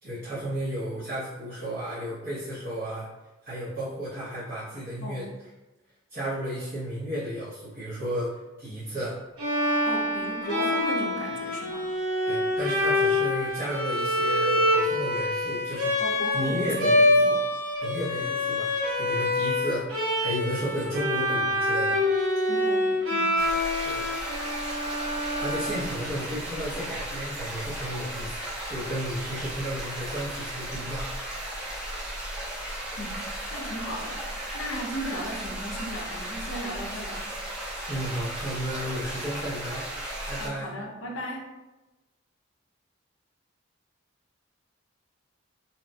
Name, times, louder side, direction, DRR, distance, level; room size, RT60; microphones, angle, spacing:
voice 1, 0.0-3.1 3.5-5.3 6.1-8.3 8.6-9.2 12.3-15.9 16.3-17.4 17.8-19.9 20.2-22.0 23.8-24.1 25.4-31.1 37.9-39.9 40.3-40.7, equal, 45° right, -12 dB, 0.7 m, -33 dB
voice 2, 5.0-5.3 9.8-11.9 16.0-17.4 22.5-23.3 33.0-33.2 33.5-34.2 34.5-37.3 40.4-41.5, equal, 65° left, 0 dB, 0.4 m, -36 dB
Bowed string instrument, 9.4-26.3, left 1 dB, 85° right, 0.7 m, -26 dB
sound 1, 23.4-40.5, right 1 dB, 5° right, 0.3 m, -35 dB
2.7 x 2.1 x 2.5 m, 1.1 s
head